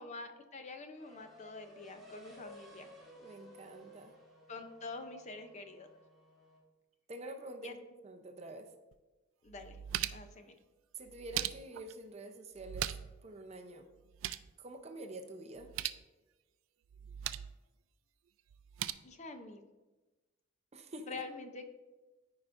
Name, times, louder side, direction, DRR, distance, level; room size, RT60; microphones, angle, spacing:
voice 1, 0.0-2.9 4.5-5.9 7.6-7.8 9.4-9.8 10.1-10.6 19.0-19.6 21.0-21.7, left 3 dB, 35° left, 7 dB, 0.6 m, -46 dB
sound 1, 0.9-6.6, equal, ahead, 2.1 m, -57 dB
voice 2, 3.1-4.1 7.1-8.7 10.9-13.9 14.6-15.7 20.7-21.2, right 1 dB, 35° right, 6 dB, 0.6 m, -47 dB
sound 2, 8.9-9.0 9.5-10.4 11.1-11.9 12.6-13.2 13.5-13.6 13.9-14.5 15.6-16.0 16.9-17.5 18.5-18.9, right 12 dB, 75° right, 0.3 m, -39 dB
13.5 x 4.8 x 2.5 m, 1.2 s
head